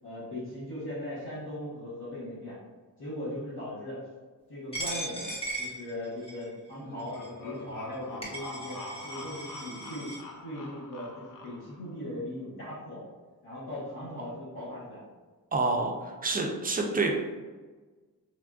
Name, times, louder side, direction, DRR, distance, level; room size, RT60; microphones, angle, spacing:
voice 1, 0.0-2.6 3.0-4.0 4.5-7.2 7.4-10.1 10.4-13.0 13.4-15.1, left 1 dB, 75° left, -11 dB, 1.2 m, -39 dB
Coin (dropping), 4.7-6.5 7.1-7.3 7.9-8.0 8.2-10.2, right 1 dB, 15° left, 0.6 m, -38 dB
sound 1, 6.8-11.9, left 2 dB, 60° left, 0.5 m, -44 dB
voice 2, 15.5-17.2, right 3 dB, 25° right, 2 dB, 0.4 m, -28 dB
3.4 x 2.4 x 2.3 m, 1.3 s
wide cardioid pair, 105°, 37 cm